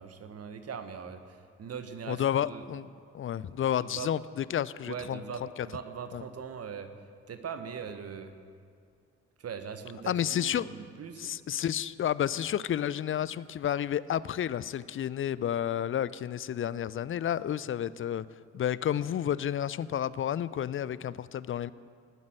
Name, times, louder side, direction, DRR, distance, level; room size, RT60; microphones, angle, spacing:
voice 1, 0.0-2.6 3.8-4.1 4.9-6.9 7.3-8.3 9.4-11.3, right 6 dB, 45° right, 9 dB, 1.5 m, -41 dB
voice 2, 2.1-5.2 6.1-6.2 10.1-10.7 11.2-18.2 18.5-21.7, left 10 dB, 35° left, 18 dB, 0.6 m, -31 dB
19.0 x 9.4 x 7.8 m, 2.2 s
figure-of-eight pair, 40°, 35 cm